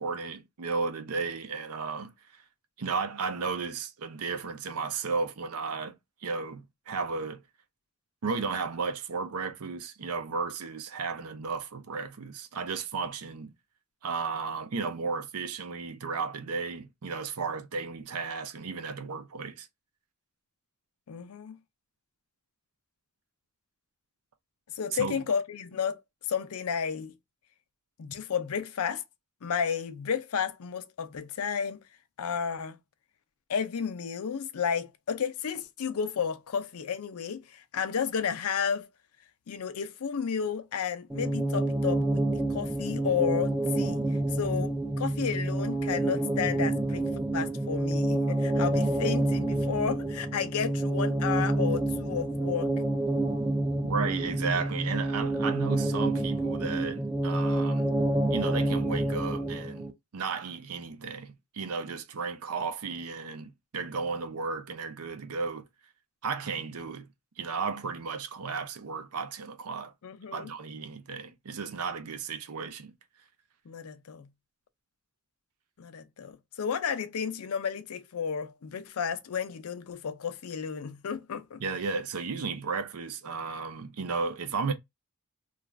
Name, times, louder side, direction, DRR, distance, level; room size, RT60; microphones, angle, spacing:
voice 1, 0.0-2.4 2.8-6.0 6.2-7.4 8.2-13.5 14.0-19.7 24.9-25.2 53.8-57.9 58.3-65.6 66.2-67.1 67.4-69.9 70.3-72.9 81.6-84.7, right 4 dB, 85° right, 0.6 m, -34 dB
voice 2, 21.1-21.6 24.8-26.0 26.3-27.1 28.0-29.0 29.4-31.8 32.2-32.8 33.5-38.9 39.5-47.0 47.3-52.7 70.0-70.5 73.7-74.3 75.8-81.6, left 7 dB, 80° left, 0.5 m, -32 dB
sound 1, 41.1-59.9, right 2 dB, 5° right, 0.4 m, -28 dB
2.4 x 2.4 x 3.1 m
head